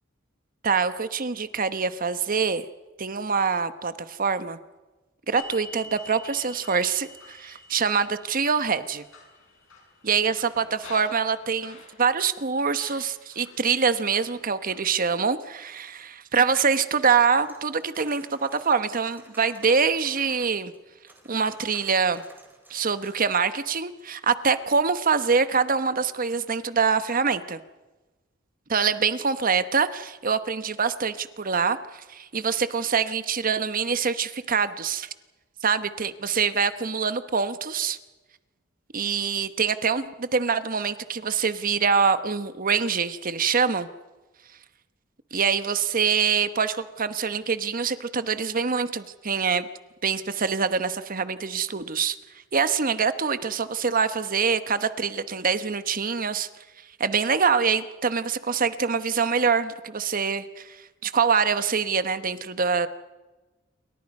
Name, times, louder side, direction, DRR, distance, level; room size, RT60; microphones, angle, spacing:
voice 1, 0.6-2.6 3.0-4.6 5.3-9.0 10.0-20.7 21.3-22.2 22.7-27.6 28.7-35.1 35.6-38.0 38.9-43.9 45.3-49.7 50.0-52.2 52.5-56.5 57.0-60.8 61.0-62.9, right 5 dB, 45° right, 12 dB, 1.1 m, -25 dB
sound 1, 5.4-12.3 12.7-13.6 14.1-14.9, left 2 dB, 75° left, 7.6 m, -46 dB
sound 2, 17.3-20.8 21.1-23.3, right 1 dB, 10° right, 4.4 m, -52 dB
28.5 x 24.0 x 5.4 m, 1.2 s
head